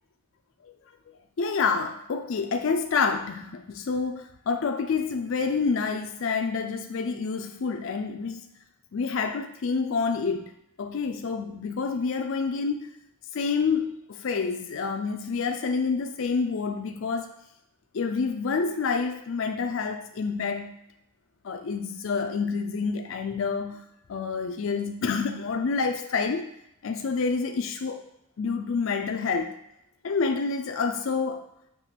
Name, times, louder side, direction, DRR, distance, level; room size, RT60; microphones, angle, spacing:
voice 1, 1.4-8.5 8.9-10.5 10.8-12.9 13.3-17.3 17.9-20.7 21.4-23.8 24.1-26.5 26.8-28.0 28.4-29.5 30.0-31.4, left 5 dB, 65° left, 6 dB, 0.4 m, -28 dB
7.4 x 3.0 x 5.8 m, 0.82 s
head